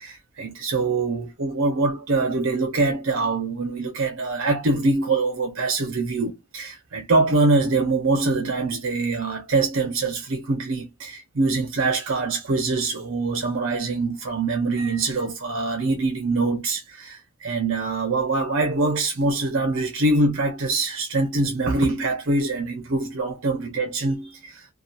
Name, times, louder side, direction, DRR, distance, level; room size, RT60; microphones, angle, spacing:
voice 1, 0.0-24.6, right 3 dB, 60° right, 0.7 m, -24 dB
2.7 x 2.3 x 2.3 m
head